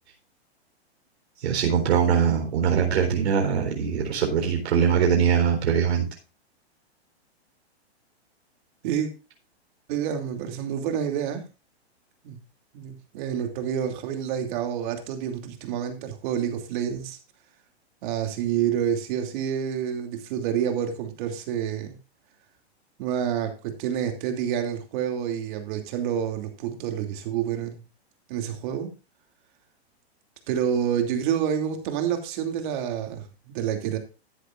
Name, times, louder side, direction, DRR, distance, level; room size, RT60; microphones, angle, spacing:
voice 1, 1.4-6.1, right 7 dB, 70° right, 4.2 m, -22 dB
voice 2, 9.9-11.4 12.2-12.4 12.7-17.2 18.0-22.0 23.0-27.8 28.3-28.9 30.5-34.0, right 9 dB, 45° right, 2.9 m, -28 dB
13.5 x 9.9 x 2.6 m
hypercardioid pair, 145°, 33 cm